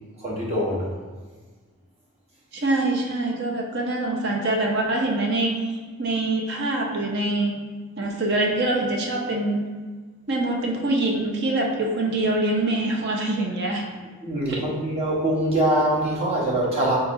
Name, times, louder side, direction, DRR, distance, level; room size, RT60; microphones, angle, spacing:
voice 1, 0.2-0.9 14.2-16.9, right 1 dB, 30° right, -6 dB, 1.0 m, -23 dB
voice 2, 2.5-7.5 8.0-9.6 10.3-13.9 14.5-14.6, right 2 dB, 55° right, 0 dB, 0.6 m, -24 dB
4.0 x 3.8 x 2.6 m, 1.4 s
head